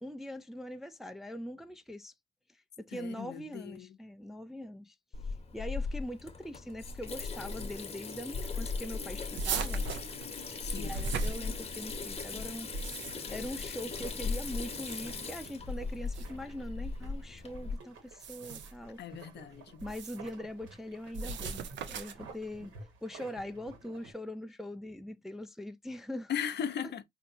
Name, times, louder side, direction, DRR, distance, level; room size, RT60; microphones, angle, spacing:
voice 1, 0.0-2.1 2.8-4.9 5.5-9.8 10.7-12.7 13.0-19.0 19.8-22.7 23.0-26.3 26.8-26.9, left 1 dB, ahead, 0.4 m, -42 dB
voice 2, 2.9-3.9 10.6-11.0 19.0-19.8 26.3-27.0, left 8 dB, 60° left, 0.6 m, -38 dB
Water tap faucet / Sink (filling or washing), 5.1-17.8, left 4 dB, 30° left, 0.9 m, -38 dB
sound 1, 9.4-12.0 12.6-13.4 14.5-15.2 16.1-16.3 18.1-18.9 19.8-20.3 21.1-22.3, right 4 dB, 65° right, 0.7 m, -38 dB
sound 2, 13.9-24.1, right 4 dB, 85° right, 1.5 m, -53 dB
4.4 x 2.8 x 2.6 m
cardioid pair, 90°, 20 cm